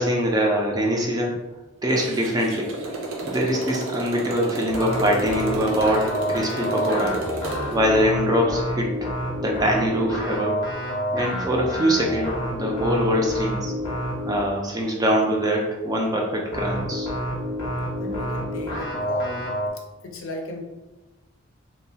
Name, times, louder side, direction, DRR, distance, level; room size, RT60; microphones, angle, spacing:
voice 1, 0.0-1.4 1.8-2.7 3.2-7.2 7.7-8.9 9.4-10.6 11.1-13.7 14.3-17.1, equal, 20° right, -1 dB, 0.4 m, -23 dB
Motorcycle, 1.9-7.8, right 2 dB, 70° right, 0.6 m, -32 dB
sound 1, 4.7-14.5 16.5-19.7, equal, 20° left, 0.7 m, -28 dB
voice 2, 17.9-19.5 20.0-20.6, left 1 dB, 70° left, 1 dB, 0.5 m, -35 dB
2.9 x 2.2 x 2.7 m, 1.1 s
head